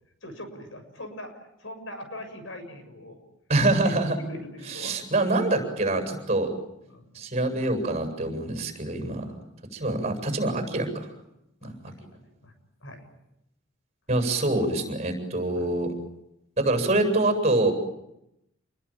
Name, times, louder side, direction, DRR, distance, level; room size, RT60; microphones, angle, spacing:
voice 1, 0.2-3.2 3.8-5.0 6.9-7.0 9.1-9.4 9.8-10.2 11.6-12.1 12.4-12.5 12.8-13.0 15.5-15.6, left 1 dB, 70° left, 7 dB, 7.2 m, -42 dB
voice 2, 3.5-4.2 4.7-6.5 7.1-9.2 9.7-11.1 11.6-11.9 14.1-15.9 16.6-17.7, right 2 dB, 35° right, 5 dB, 7.9 m, -25 dB
29.5 x 21.5 x 8.9 m, 0.86 s
head